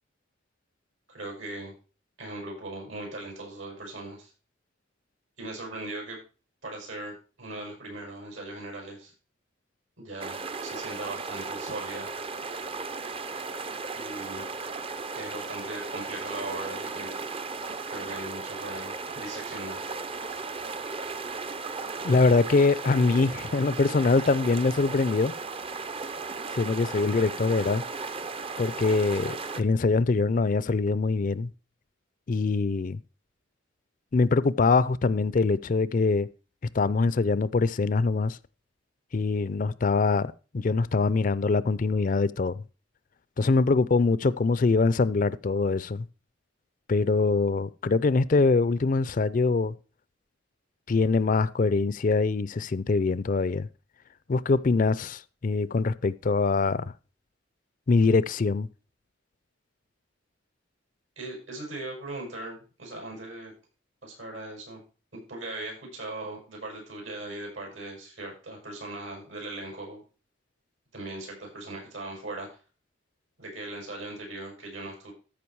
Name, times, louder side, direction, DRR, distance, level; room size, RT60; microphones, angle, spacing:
voice 1, 1.1-1.7 2.2-4.3 5.4-6.2 6.6-9.1 10.0-12.1 13.9-14.5 15.1-17.1 17.9-19.8 61.2-63.5 64.0-64.8 65.1-70.0 70.9-72.6 73.4-75.1, right 2 dB, 80° right, 6.6 m, -39 dB
Soothing Stream with wide stereo field, 10.2-29.6, right 4 dB, 30° right, 0.5 m, -36 dB
voice 2, 22.0-25.3 26.5-27.8 28.6-31.5 32.3-33.0 34.1-36.3 36.7-38.4 39.1-42.6 43.4-46.1 46.9-49.7 50.9-53.7 54.3-56.9 57.9-58.7, left 3 dB, 40° left, 0.4 m, -23 dB
14.0 x 5.2 x 4.6 m
head